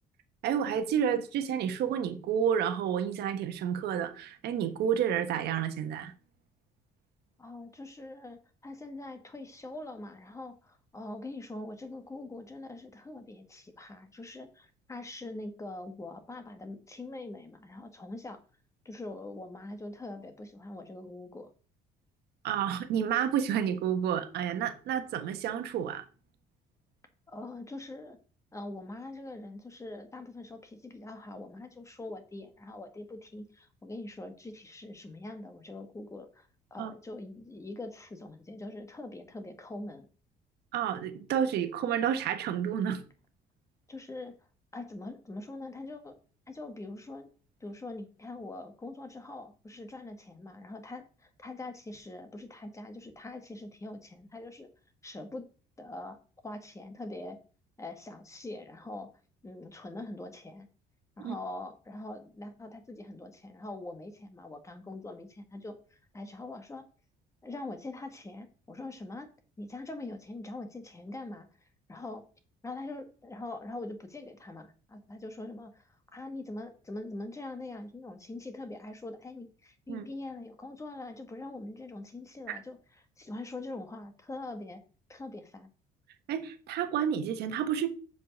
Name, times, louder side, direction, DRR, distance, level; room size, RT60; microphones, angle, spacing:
voice 1, 0.4-6.1 22.4-26.0 36.8-36.9 40.7-43.0 61.2-61.3 79.9-80.1 86.3-87.9, right 8 dB, 75° right, 1.3 m, -30 dB
voice 2, 7.4-18.4 18.8-21.5 27.3-28.2 28.5-40.1 43.9-44.3 44.7-46.2 46.5-47.3 47.6-54.7 55.0-55.4 55.8-56.2 56.4-57.4 57.8-59.1 59.4-60.7 61.2-66.8 67.4-69.3 69.6-72.2 72.6-82.8 83.2-84.8 85.1-85.7, left 2 dB, 15° left, 1.6 m, -43 dB
7.2 x 5.1 x 6.5 m
cardioid pair, 110°, 17 cm